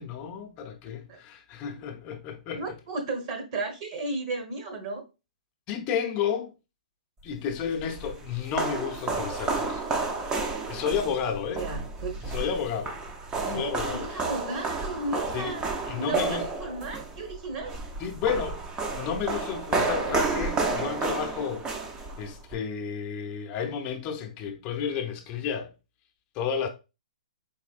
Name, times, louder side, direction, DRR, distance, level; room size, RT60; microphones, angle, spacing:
voice 1, 0.0-2.8 5.7-6.5 7.2-9.9 10.7-11.7 12.3-13.0 13.5-14.3 15.3-15.6 15.8-16.5 18.0-18.6 18.9-21.9 22.2-25.7 26.3-26.7, left 7 dB, 30° left, 0.6 m, -31 dB
voice 2, 0.8-1.2 2.5-5.0 11.6-12.4 13.3-15.6 16.0-17.8, right 2 dB, 50° right, 1.2 m, -34 dB
sound 1, 7.5-22.5, right 3 dB, 20° right, 0.5 m, -31 dB
4.2 x 2.9 x 2.4 m
hypercardioid pair, 135°, 4 cm